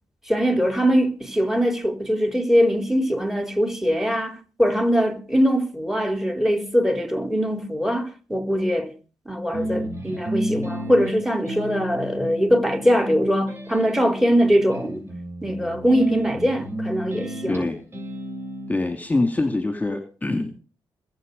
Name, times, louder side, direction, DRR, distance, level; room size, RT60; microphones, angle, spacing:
voice 1, 0.3-8.9 9.3-15.1 15.4-17.6, equal, 5° right, 3.6 m, -22 dB
sound 1, 9.5-18.8, equal, 30° right, 7.6 m, -32 dB
voice 2, 17.5-17.8 18.7-20.6, left 2 dB, 20° left, 2.4 m, -24 dB
21.5 x 8.2 x 5.3 m
cardioid pair, 65°, 9 cm